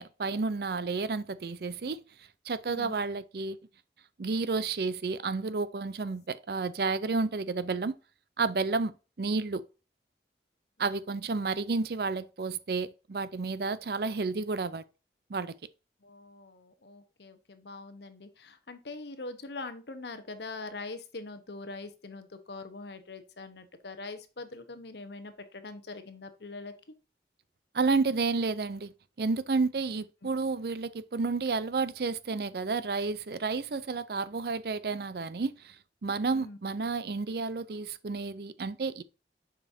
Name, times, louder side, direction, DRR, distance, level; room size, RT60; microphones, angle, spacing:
voice 1, 0.0-2.0 2.5-3.6 4.2-7.9 8.4-8.9 9.2-9.6 10.8-14.8 15.3-15.5 27.7-28.9 29.2-35.8 36.0-39.0, right 4 dB, 60° right, 0.5 m, -31 dB
voice 2, 16.0-26.7 36.3-36.6, left 3 dB, 75° left, 1.0 m, -43 dB
6.9 x 5.2 x 2.7 m
head